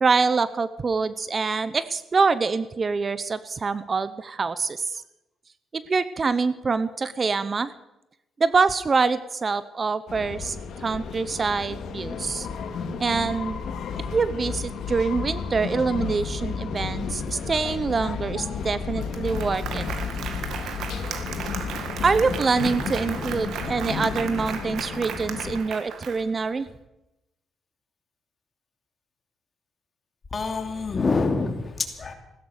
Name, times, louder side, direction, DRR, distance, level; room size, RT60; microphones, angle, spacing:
voice 1, 0.0-5.0 5.7-7.7 8.4-12.5 13.0-13.6 14.1-19.8 22.0-26.7, right 4 dB, 35° right, 15 dB, 0.7 m, -25 dB
sound 1, 10.1-25.6, left 5 dB, 70° left, 1.8 m, -32 dB
Applause, 18.6-18.7 19.0-26.5, right 7 dB, 75° right, 1.9 m, -35 dB
voice 2, 30.3-32.1, left 3 dB, 35° left, 5 dB, 2.8 m, -26 dB
15.5 x 13.5 x 6.6 m, 0.93 s
cardioid pair, 90°, 0 cm